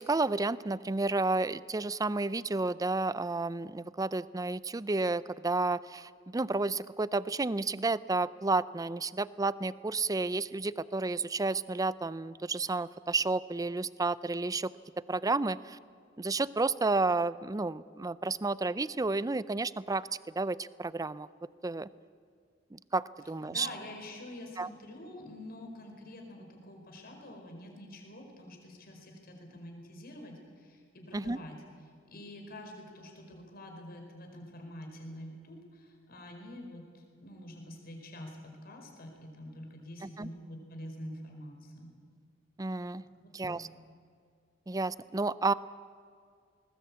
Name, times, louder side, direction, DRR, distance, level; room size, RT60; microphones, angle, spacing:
voice 1, 0.0-14.7 15.1-15.8 16.2-20.1 20.4-21.3 21.6-21.9 22.7-23.7 24.6-24.7 31.1-31.4 40.0-40.3 42.6-43.0 43.3-43.7 44.7-45.5, right 3 dB, 20° right, 17 dB, 0.5 m, -31 dB
voice 2, 23.4-31.6 32.1-41.9 43.0-43.6, left 1 dB, 50° left, 3 dB, 4.9 m, -47 dB
20.5 x 20.0 x 8.6 m, 2.2 s
head